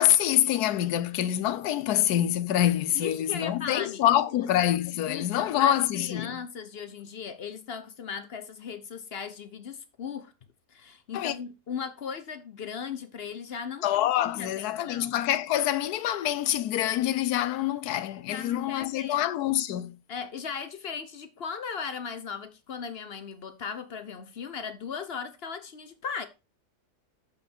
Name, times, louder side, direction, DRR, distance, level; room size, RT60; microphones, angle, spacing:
voice 1, 0.0-6.4 11.1-11.4 13.8-20.0, left 12 dB, 75° left, 1.2 m, -26 dB
voice 2, 2.9-4.0 4.3-4.5 5.1-10.3 10.7-13.8 14.2-15.2 18.3-19.2 20.1-26.3, left 6 dB, 50° left, 0.9 m, -37 dB
6.9 x 5.8 x 4.6 m
omnidirectional pair, 1.7 m